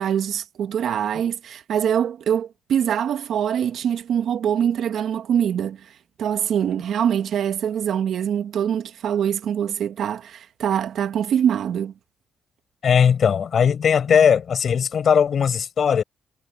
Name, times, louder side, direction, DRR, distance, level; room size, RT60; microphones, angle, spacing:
voice 1, 0.0-5.9 6.2-11.9, right 9 dB, 65° right, 2.1 m, -24 dB
voice 2, 12.8-16.0, left 7 dB, 55° left, 6.1 m, -18 dB
cardioid pair, 90°, 0 cm